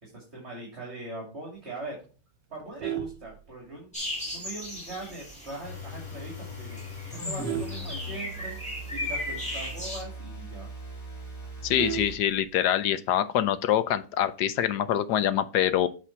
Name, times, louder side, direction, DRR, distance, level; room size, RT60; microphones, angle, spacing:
voice 1, 0.0-2.0 2.5-3.9 4.3-6.8 7.1-8.6 8.9-10.7, right 2 dB, 35° right, -3 dB, 2.8 m, -41 dB
Vehicle horn car horn honking, 2.5-4.0 4.5-4.7 5.0-5.1 5.6-5.7 5.9-6.3 6.9-8.7 9.1-9.2 9.4-9.5 10.0-10.1 10.4-10.5 10.8-12.8 14.0-14.4, right 11 dB, 80° right, 1.6 m, -36 dB
sound 1, 3.9-10.0, left 1 dB, 5° left, 2.1 m, -37 dB
sound 2, 5.6-12.2, left 1 dB, 25° left, 2.9 m, -40 dB
voice 2, 11.6-15.9, left 10 dB, 70° left, 12 dB, 1.2 m, -25 dB
8.3 x 4.2 x 4.5 m, 0.35 s
omnidirectional pair, 1.9 m